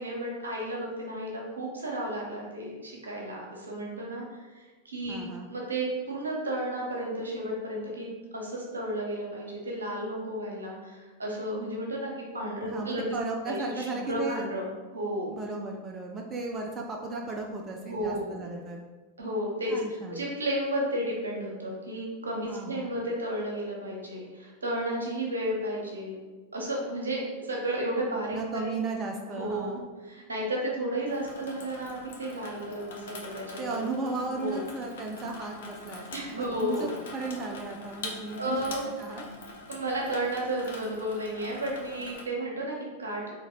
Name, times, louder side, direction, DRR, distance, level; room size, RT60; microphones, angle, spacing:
voice 1, 0.0-4.2 4.6-8.1 8.3-13.2 13.4-15.3 17.8-18.4 19.2-26.2 26.5-28.6 29.3-29.7 30.0-33.9 34.3-34.7 36.1-36.9 38.4-38.9 39.7-43.2, right 1 dB, 70° right, -2 dB, 1.1 m, -33 dB
voice 2, 5.1-5.5 12.7-14.4 15.3-18.8 19.7-20.2 22.5-22.9 28.3-29.8 33.6-38.7 39.0-39.2, right 3 dB, 25° right, 1 dB, 0.4 m, -35 dB
Water tap faucet / Sink (filling or washing), 31.1-42.2, left 3 dB, 60° left, 0.7 m, -44 dB
3.9 x 3.1 x 3.7 m, 1.3 s
figure-of-eight pair, 90°, 0 cm